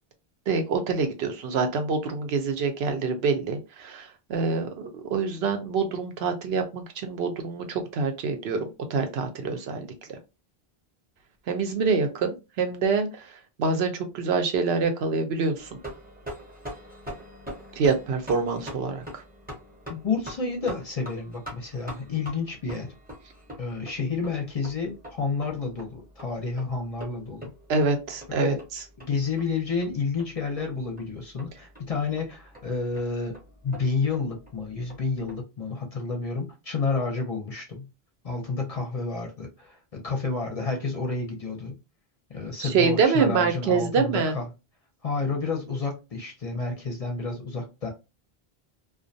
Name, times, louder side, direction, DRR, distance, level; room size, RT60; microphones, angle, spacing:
voice 1, 0.5-10.2 11.5-15.8 17.8-19.0 27.7-28.8 42.6-44.4, right 4 dB, 80° right, 0.9 m, -26 dB
sound 1, 15.6-35.4, equal, 10° right, 0.7 m, -44 dB
voice 2, 19.9-22.9 23.6-27.5 28.3-28.6 29.0-33.4 33.6-37.9 38.2-41.8 42.3-44.4 45.0-47.9, left 4 dB, 45° left, 0.6 m, -30 dB
2.4 x 2.1 x 2.6 m
omnidirectional pair, 1.0 m